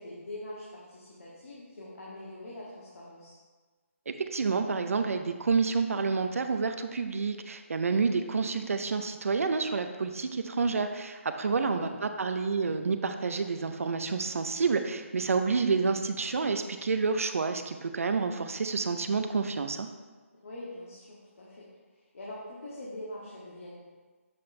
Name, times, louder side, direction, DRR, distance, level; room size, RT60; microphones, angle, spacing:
voice 1, 0.0-3.3 11.6-11.9 20.4-21.7 21.9-23.8, left 1 dB, 70° left, -6 dB, 1.4 m, -43 dB
voice 2, 4.1-19.9, right 4 dB, 75° right, 7 dB, 0.5 m, -29 dB
7.5 x 3.2 x 4.2 m, 1.4 s
hypercardioid pair, 180°, 8 cm